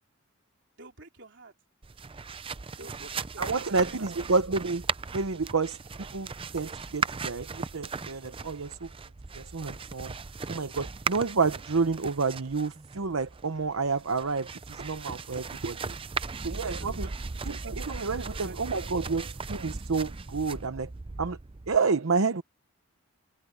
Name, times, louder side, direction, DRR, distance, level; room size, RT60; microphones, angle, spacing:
voice 1, 0.8-1.5 2.7-4.0 15.2-15.4 16.8-17.1 17.8-19.0, right 2 dB, 60° right, 3.6 m, -50 dB
sound 1, 1.8-21.8, right 5 dB, 25° right, 0.5 m, -37 dB
voice 2, 3.4-4.8 5.1-5.8 6.1-8.9 9.3-10.1 10.5-16.0 16.4-17.1 17.4-20.9 21.2-21.4 21.7-22.4, right 4 dB, 85° right, 0.8 m, -29 dB
head